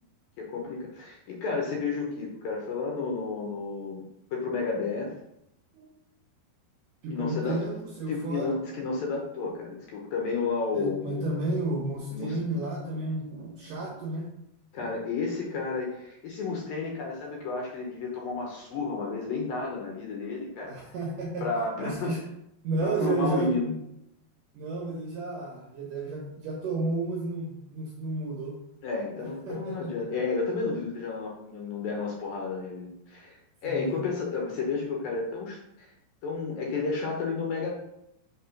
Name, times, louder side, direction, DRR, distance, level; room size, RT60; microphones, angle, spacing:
voice 1, 0.4-5.1 7.1-7.5 8.1-11.2 12.1-12.4 14.7-20.8 21.4-22.2 22.8-23.7 28.8-35.9 36.2-37.7, left 4 dB, 70° left, -1 dB, 2.4 m, -32 dB
voice 2, 7.0-8.5 10.7-14.3 14.8-14.9 20.6-21.5 21.8-22.2 22.6-23.8 24.5-28.6 29.2-29.9 33.6-34.0, right 2 dB, 65° right, -2 dB, 2.2 m, -32 dB
5.8 x 4.2 x 5.7 m, 0.80 s
omnidirectional pair, 4.9 m